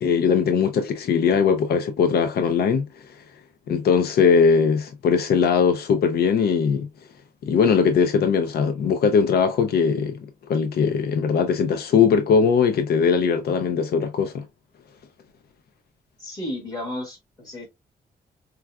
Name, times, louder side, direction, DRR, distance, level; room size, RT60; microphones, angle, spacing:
voice 1, 0.0-2.9 3.7-6.9 7.4-10.2 10.5-14.4, left 6 dB, 80° left, 0.5 m, -20 dB
voice 2, 16.2-17.7, left 1 dB, 25° left, 1.9 m, -33 dB
4.4 x 2.3 x 2.2 m
wide cardioid pair, 175°, 16 cm